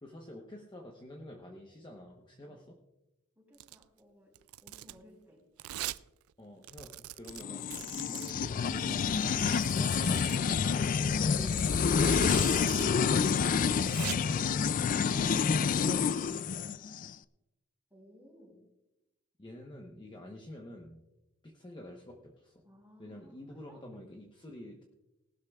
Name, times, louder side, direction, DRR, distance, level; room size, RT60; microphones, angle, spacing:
voice 1, 0.0-2.8 6.4-9.4 11.1-16.6 19.4-21.0 21.4-22.6 23.0-24.8, left 1 dB, 20° left, 0 dB, 1.0 m, -48 dB
voice 2, 3.3-5.5 7.4-7.7 17.9-18.7 22.6-24.0, equal, 10° right, -2 dB, 4.3 m, -59 dB
Domestic sounds home sounds, 3.5-3.8 4.4-5.0 5.6-6.0 6.3-6.4 6.6-8.3 9.1-10.4 11.3-12.9 13.1-13.2 13.6-14.1, right 14 dB, 85° right, 0.3 m, -42 dB
sound 1, 7.4-17.1, left 6 dB, 40° left, 0.3 m, -28 dB
18.5 x 12.5 x 2.4 m, 0.95 s
head